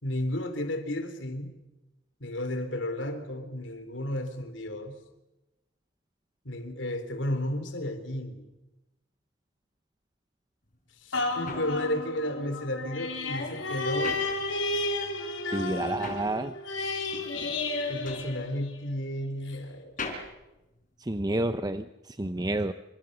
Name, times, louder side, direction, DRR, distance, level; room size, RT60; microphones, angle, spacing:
voice 1, 0.0-1.6 2.2-5.0 6.4-8.4 11.0-14.2 17.9-19.9, left 1 dB, 70° left, 8 dB, 4.0 m, -33 dB
sound 1, 10.7-15.0 15.3-21.5, left 3 dB, 45° left, 4.9 m, -43 dB
sound 2, 11.1-19.0 19.5-19.6, left 2 dB, 85° left, 4.4 m, -32 dB
voice 2, 15.5-16.5 21.1-21.8 22.2-22.7, right 1 dB, 20° right, 10 dB, 0.8 m, -29 dB
28.5 x 27.5 x 6.9 m, 1.0 s
head